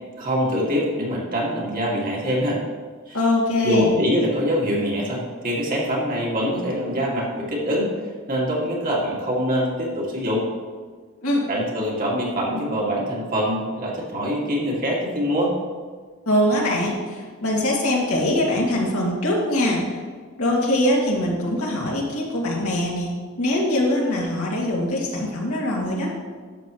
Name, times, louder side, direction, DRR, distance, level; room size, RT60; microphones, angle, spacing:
voice 1, 0.2-2.6 3.1-3.2 3.6-7.9 8.3-10.5 11.5-15.6, equal, 40° right, -3 dB, 2.0 m, -24 dB
voice 2, 3.1-4.0 11.2-11.4 16.3-20.0 20.4-23.1 23.4-26.1, left 1 dB, 75° left, -3 dB, 2.4 m, -22 dB
11.5 x 7.5 x 3.1 m, 1.6 s
head